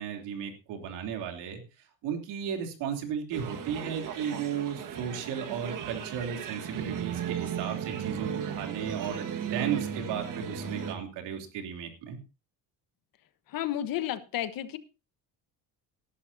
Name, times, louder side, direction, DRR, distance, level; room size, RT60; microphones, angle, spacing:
voice 1, 0.0-1.6 2.0-12.2, right 8 dB, 90° right, 4 dB, 3.3 m, -35 dB
sound 1, 3.3-10.9, right 8 dB, 50° right, 1.8 m, -35 dB
voice 2, 13.5-14.8, left 12 dB, 55° left, 12 dB, 1.3 m, -32 dB
19.0 x 11.5 x 2.8 m, 0.30 s
cardioid pair, 155°, 41 cm